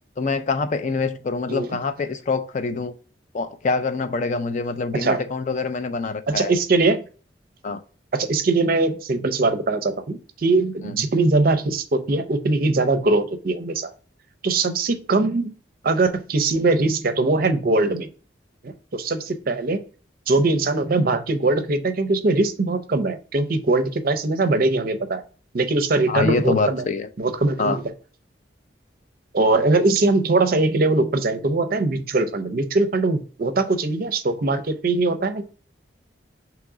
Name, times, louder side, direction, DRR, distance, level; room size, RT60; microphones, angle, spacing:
voice 1, 0.2-2.9 3.3-6.5 7.6-7.8 10.8-11.0 26.1-27.1 27.6-27.8, left 4 dB, 40° left, 0.3 m, -25 dB
voice 2, 6.3-7.0 8.1-13.9 14.4-15.5 15.8-18.1 18.6-19.8 20.3-25.2 25.5-26.8 27.2-27.8 29.3-35.4, right 3 dB, 50° right, 0.5 m, -21 dB
3.6 x 3.0 x 4.8 m
head